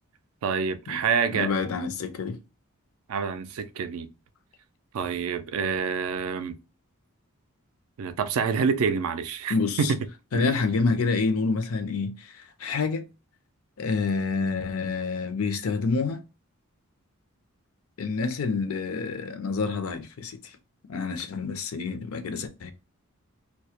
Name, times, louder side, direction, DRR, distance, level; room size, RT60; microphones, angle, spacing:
voice 1, 0.4-1.5 3.1-4.1 4.9-6.6 8.0-10.0 10.3-10.5, right 6 dB, 70° right, 0.3 m, -27 dB
voice 2, 1.3-2.4 9.5-9.9 10.3-13.1 13.8-16.2 18.0-20.6 20.9-22.7, left 4 dB, 75° left, 0.5 m, -28 dB
2.2 x 2.0 x 2.7 m
head